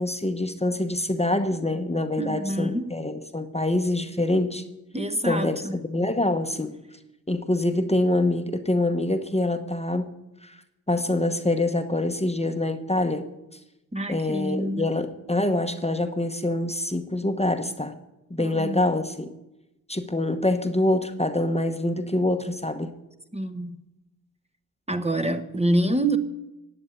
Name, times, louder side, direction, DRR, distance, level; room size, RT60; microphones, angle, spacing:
voice 1, 0.0-4.6 5.2-6.7 7.3-10.1 10.4-10.6 10.9-13.3 14.1-17.9 18.3-19.3 19.9-22.9, left 1 dB, 20° left, 1.1 m, -25 dB
voice 2, 2.2-2.9 4.9-5.8 13.9-14.9 18.4-18.8 23.3-23.8 24.9-26.2, right 1 dB, 20° right, 1.1 m, -27 dB
16.0 x 9.4 x 9.1 m
wide cardioid pair, 90°, 35 cm